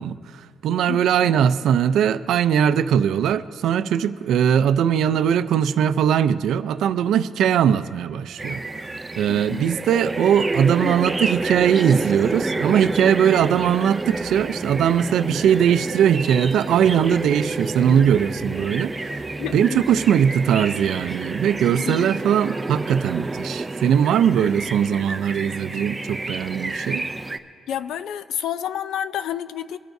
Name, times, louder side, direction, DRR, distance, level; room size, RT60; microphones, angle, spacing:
voice 1, 0.0-8.6 9.2-19.2 19.5-27.0, right 9 dB, 70° right, 12 dB, 0.5 m, -20 dB
voice 2, 0.9-1.4 9.3-9.7 19.4-19.8 21.7-22.1 24.9-25.0 27.7-29.8, left 10 dB, 70° left, 14 dB, 0.5 m, -30 dB
sound 1, 8.4-27.4, right 2 dB, 10° right, 0.4 m, -29 dB
sound 2, 12.5-12.8 13.2-13.3 13.8-14.6 15.5-16.3 16.7-17.7, equal, 5° left, 1.0 m, -48 dB
23.5 x 14.0 x 2.7 m, 2.5 s
cardioid pair, 180°, 0 cm